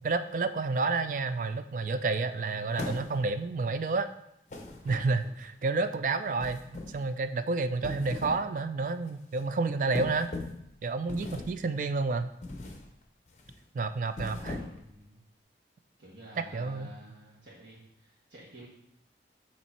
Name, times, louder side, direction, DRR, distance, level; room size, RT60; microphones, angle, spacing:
voice 1, 0.0-4.1 4.8-10.3 10.8-12.3 13.7-14.6 16.4-16.9, right 3 dB, 45° right, 11 dB, 0.3 m, -30 dB
sound 1, 2.7-3.4 4.5-5.4 6.4-7.1 7.7-8.5 8.9-9.1 9.9-10.7 11.1-11.7 12.4-12.9 13.3-13.5 14.1-14.9, left 2 dB, 40° left, 0.7 m, -39 dB
voice 2, 14.2-15.2 16.0-18.7, right 1 dB, 90° right, -8 dB, 1.4 m, -51 dB
7.1 x 3.1 x 4.4 m, 0.81 s
head